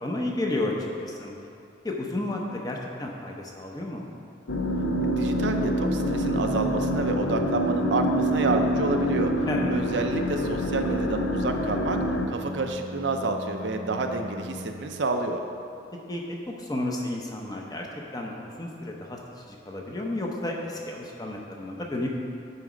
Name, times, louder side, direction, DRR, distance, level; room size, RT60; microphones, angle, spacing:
voice 1, 0.0-0.7 1.0-1.3 1.8-4.1 9.5-9.7 16.1-17.9 18.1-18.3 18.6-22.1, left 1 dB, 20° left, -1 dB, 0.8 m, -32 dB
sound 1, 4.5-12.3, equal, 70° left, 0.6 m, -26 dB
Organ, 4.5-15.3, left 2 dB, 40° right, 0.8 m, -39 dB
voice 2, 5.2-12.0 12.3-15.4, right 2 dB, 70° right, 5 dB, 0.6 m, -29 dB
9.7 x 4.2 x 5.0 m, 2.6 s
head